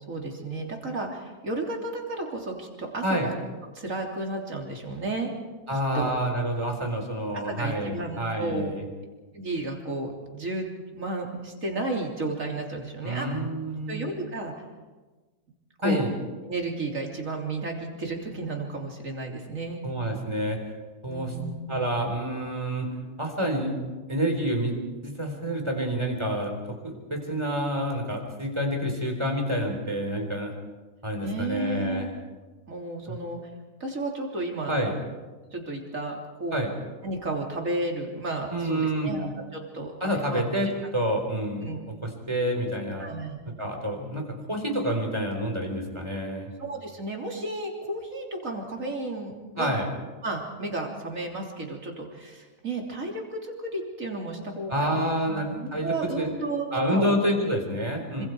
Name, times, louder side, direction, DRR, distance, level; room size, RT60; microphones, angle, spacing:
voice 1, 0.1-3.3 3.8-5.3 5.9-6.1 7.3-8.7 9.3-13.3 13.9-14.6 15.8-16.1 16.4-19.8 21.1-21.8 31.2-32.1 32.7-33.4 33.8-34.8 35.5-36.6 37.0-40.4 41.6-41.8 43.0-43.4 46.6-49.8 50.2-55.0 55.3-57.2 58.2-58.3, right 2 dB, 50° right, 0 dB, 3.7 m, -33 dB
voice 2, 5.7-8.9 13.0-14.1 15.8-16.1 19.8-20.6 21.0-21.3 21.7-22.9 23.2-23.8 24.1-24.7 25.0-26.5 26.8-30.5 31.0-32.1 34.7-34.9 36.5-36.7 38.5-39.1 40.0-40.7 40.9-41.7 42.0-43.1 43.6-46.5 49.6-49.9 54.7-56.3 56.7-58.3, equal, 15° right, 3 dB, 4.1 m, -28 dB
26.5 x 25.5 x 4.7 m, 1.3 s
omnidirectional pair, 1.7 m